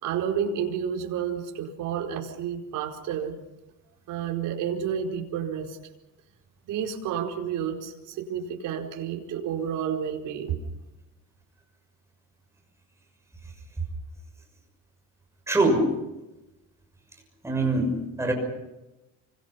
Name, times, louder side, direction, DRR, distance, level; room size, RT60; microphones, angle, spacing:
voice 1, 0.0-3.4 4.1-5.8 6.7-10.6, right 8 dB, 75° right, 1 dB, 4.7 m, -30 dB
voice 2, 15.5-15.8 17.4-17.9 18.2-18.3, right 2 dB, 10° right, 1 dB, 6.5 m, -22 dB
30.0 x 25.0 x 5.7 m, 0.99 s
cardioid pair, 170°, 32 cm